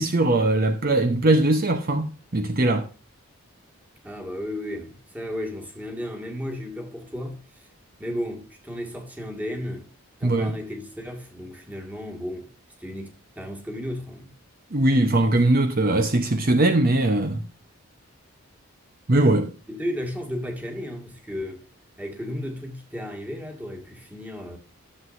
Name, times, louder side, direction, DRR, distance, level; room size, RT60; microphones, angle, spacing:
voice 1, 0.0-2.9 10.2-10.5 14.7-17.4 19.1-19.5, right 2 dB, 40° right, 0.8 m, -21 dB
voice 2, 4.0-7.7 8.0-9.9 10.2-12.5 12.8-14.3 19.7-21.7 22.0-24.6, equal, 5° right, 1.9 m, -34 dB
13.0 x 7.8 x 2.6 m
head